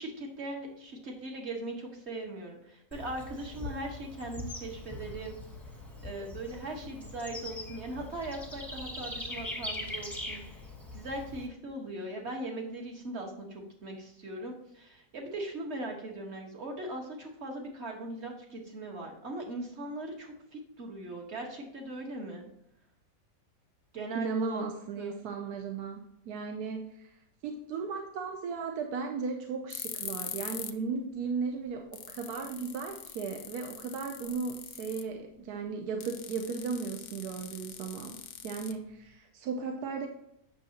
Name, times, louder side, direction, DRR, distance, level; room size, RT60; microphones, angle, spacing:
voice 1, 0.0-5.3 6.0-10.4 10.9-22.4 23.9-24.6 25.0-25.1, right 1 dB, 45° right, 1 dB, 1.5 m, -39 dB
Bird / Insect, 2.9-11.5, left 2 dB, ahead, 0.9 m, -42 dB
voice 2, 24.1-40.1, right 5 dB, 70° right, 3 dB, 1.2 m, -36 dB
sound 1, 29.7-30.8 31.1-31.2 31.7-31.8 31.9-35.2 36.0-39.1, left 10 dB, 70° left, 1.0 m, -42 dB
8.2 x 6.4 x 2.8 m, 0.76 s
omnidirectional pair, 1.8 m